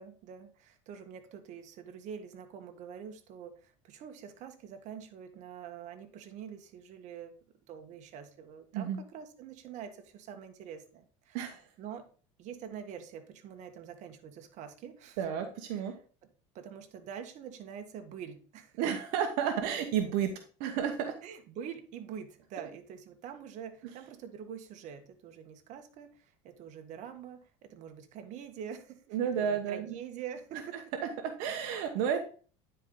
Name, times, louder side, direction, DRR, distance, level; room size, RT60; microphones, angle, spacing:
voice 1, 0.0-7.3 7.7-11.5 11.8-12.1 12.4-15.3 15.7-16.0 16.5-18.8 21.2-30.8, right 8 dB, 55° right, 6 dB, 1.4 m, -45 dB
voice 2, 15.2-15.9 18.8-20.3 20.6-21.1 22.6-22.7 29.1-29.9 31.4-32.2, right 8 dB, 70° right, 5 dB, 1.1 m, -31 dB
9.8 x 4.6 x 3.8 m, 0.39 s
supercardioid pair, 105°, 15 cm